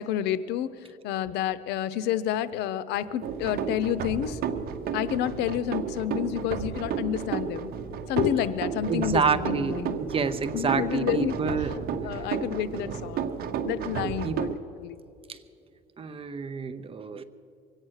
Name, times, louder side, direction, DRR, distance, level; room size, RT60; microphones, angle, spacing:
voice 1, 0.0-4.4 4.9-7.7 8.1-10.0 10.5-11.4 12.0-13.3 13.6-14.5 14.8-15.0, left 11 dB, 90° left, 15 dB, 0.7 m, -29 dB
sound 1, 3.2-14.6, right 7 dB, 65° right, 1.0 m, -32 dB
voice 2, 8.9-11.7 12.8-13.0 14.0-14.4 15.3-15.4 16.0-17.2, right 5 dB, 35° right, 11 dB, 0.8 m, -28 dB
23.5 x 8.9 x 6.4 m, 2.6 s
cardioid pair, 110°, 17 cm